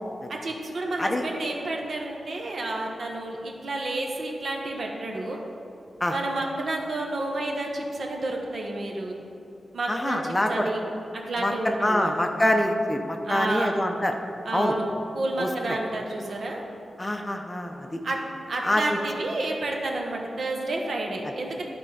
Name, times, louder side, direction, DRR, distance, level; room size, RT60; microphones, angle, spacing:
voice 1, 0.3-5.4 6.1-9.2 9.7-10.8 11.1-12.1 13.2-13.8 14.4-14.9 15.1-16.6 18.0-18.2 18.5-21.6, right 2 dB, 65° right, 0 dB, 1.2 m, -30 dB
voice 2, 9.9-10.7 11.4-11.5 11.8-14.1 14.5-14.7 15.4-15.8 17.0-18.0 18.6-19.0, left 1 dB, 15° left, 4 dB, 0.6 m, -25 dB
12.0 x 4.3 x 5.0 m, 2.7 s
wide cardioid pair, 110°, 0 cm